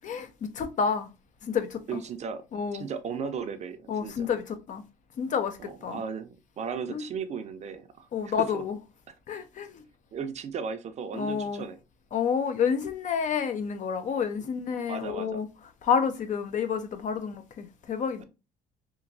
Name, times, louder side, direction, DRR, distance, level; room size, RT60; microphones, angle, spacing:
voice 1, 0.0-1.1 1.4-2.0 2.5-2.9 3.9-4.8 5.2-6.0 6.9-7.0 8.1-8.8 9.3-9.8 11.1-11.6 12.1-15.5 15.8-18.2, left 6 dB, 45° left, 0.5 m, -29 dB
voice 2, 1.9-2.4 2.7-4.3 5.6-8.6 9.1-9.2 10.1-11.8 14.9-15.4, right 6 dB, 40° right, 0.4 m, -36 dB
2.9 x 2.5 x 2.5 m
cardioid pair, 110°, 17 cm